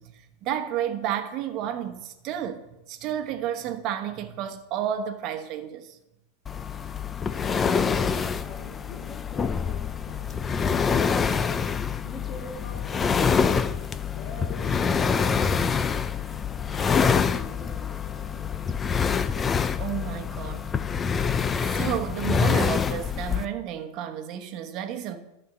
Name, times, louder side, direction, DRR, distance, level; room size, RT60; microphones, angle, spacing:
voice 1, 0.0-2.6 2.9-6.0 19.8-20.6 21.5-25.2, right 10 dB, 40° right, 1.1 m, -31 dB
sound 1, 6.5-23.5, left 6 dB, 20° left, 0.4 m, -26 dB
voice 2, 7.2-11.7 12.0-13.8 14.1-18.8, left 3 dB, 35° left, 2.0 m, -44 dB
12.5 x 4.4 x 6.7 m
supercardioid pair, 145°, 0 cm